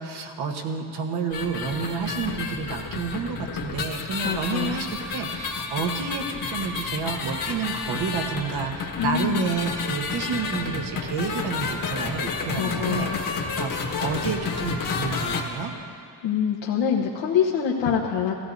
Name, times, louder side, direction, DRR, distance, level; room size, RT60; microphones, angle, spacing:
voice 1, 0.0-15.7, right 5 dB, 60° right, 4 dB, 1.3 m, -30 dB
sound 1, 1.3-15.4, left 4 dB, 50° left, 1.4 m, -30 dB
voice 2, 4.2-4.8 9.0-9.5 12.6-13.2 16.2-18.3, left 7 dB, 85° left, -3 dB, 1.1 m, -25 dB
17.5 x 14.5 x 2.6 m, 2.3 s
cardioid pair, 130°, 43 cm